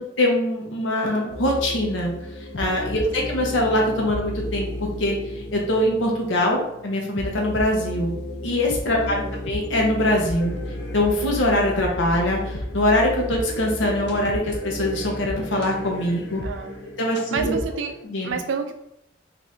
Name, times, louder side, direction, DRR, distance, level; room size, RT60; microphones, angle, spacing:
voice 1, 0.0-4.7 5.0-8.1 8.4-10.6 10.9-16.4 17.0-17.5 18.1-18.4, left 1 dB, 85° left, 0 dB, 0.8 m, -23 dB
sound 1, 1.3-18.1, left 1 dB, 60° left, 0.5 m, -33 dB
voice 2, 3.1-3.4 9.0-9.4 16.4-16.8 17.3-17.9 18.2-18.7, right 5 dB, 85° right, 8 dB, 0.4 m, -30 dB
2.7 x 2.5 x 3.4 m, 0.80 s
head